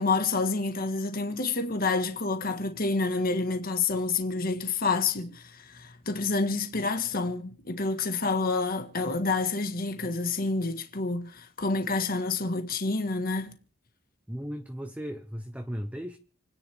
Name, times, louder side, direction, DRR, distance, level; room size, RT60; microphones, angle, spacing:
voice 1, 0.0-13.5, left 3 dB, 50° left, 1.7 m, -28 dB
voice 2, 14.3-16.2, equal, 5° right, 0.9 m, -36 dB
29.0 x 10.0 x 3.6 m
head